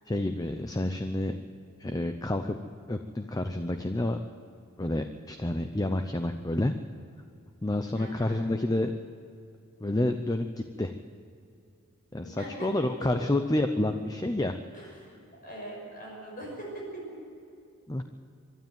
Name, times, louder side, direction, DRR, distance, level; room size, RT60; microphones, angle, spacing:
voice 1, 0.1-1.4 1.8-2.6 2.9-4.2 4.8-6.7 7.6-8.9 9.8-10.9 12.1-14.9 17.9-18.0, left 1 dB, 15° left, 7 dB, 0.7 m, -29 dB
voice 2, 7.9-8.4 12.2-12.5 14.7-17.0, right 1 dB, 40° left, -2 dB, 5.9 m, -42 dB
24.0 x 12.0 x 9.2 m, 2.5 s
head